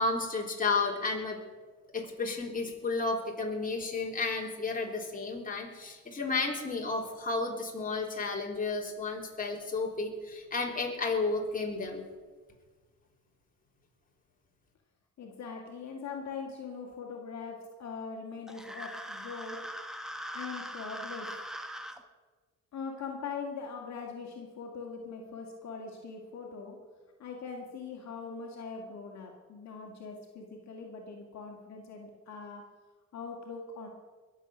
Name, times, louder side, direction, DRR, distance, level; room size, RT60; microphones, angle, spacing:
voice 1, 0.0-1.4 1.9-12.0, left 3 dB, 25° left, -1 dB, 3.6 m, -32 dB
voice 2, 15.2-19.6 20.3-21.3 22.7-26.8 27.2-32.7 33.1-33.9, left 5 dB, 65° left, 0 dB, 2.2 m, -41 dB
sound 1, 18.5-22.0, equal, ahead, 1.3 m, -41 dB
21.5 x 7.7 x 6.3 m, 1.4 s
cardioid pair, 90°, 30 cm